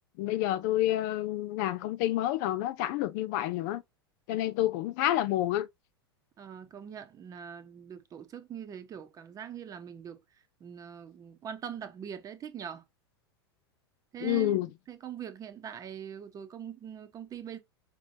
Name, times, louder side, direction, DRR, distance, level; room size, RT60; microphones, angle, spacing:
voice 1, 0.2-3.8 4.3-5.7 14.2-14.7, left 14 dB, 45° left, 0.4 m, -29 dB
voice 2, 6.4-10.2 10.6-12.8 14.1-14.6 14.9-17.6, right 8 dB, 25° right, 0.8 m, -42 dB
5.2 x 2.9 x 2.7 m
figure-of-eight pair, 90°, 13 cm